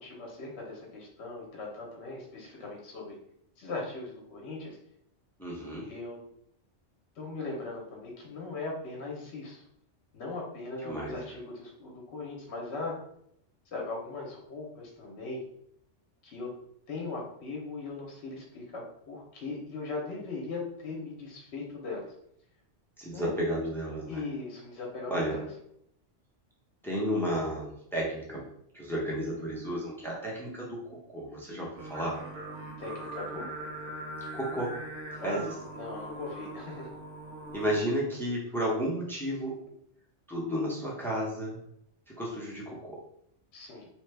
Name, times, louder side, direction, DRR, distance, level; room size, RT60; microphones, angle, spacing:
voice 1, 0.0-3.2 3.6-4.8 5.8-6.2 7.2-9.6 10.1-12.9 13.7-15.4 16.2-16.5 16.9-22.1 23.1-23.3 24.1-25.4 32.8-33.5 35.2-37.0 43.5-43.9, left 3 dB, 65° left, -1 dB, 0.9 m, -39 dB
voice 2, 5.4-5.9 10.8-11.4 23.0-24.2 25.1-25.4 26.8-28.4 28.7-32.2 34.3-34.8 35.1-35.5 37.5-39.5 40.3-41.6 42.1-43.0, equal, 5° left, -4 dB, 0.5 m, -32 dB
Singing, 31.7-37.8, right 1 dB, 80° right, 1.0 m, -41 dB
3.0 x 2.2 x 3.2 m, 0.71 s
omnidirectional pair, 1.2 m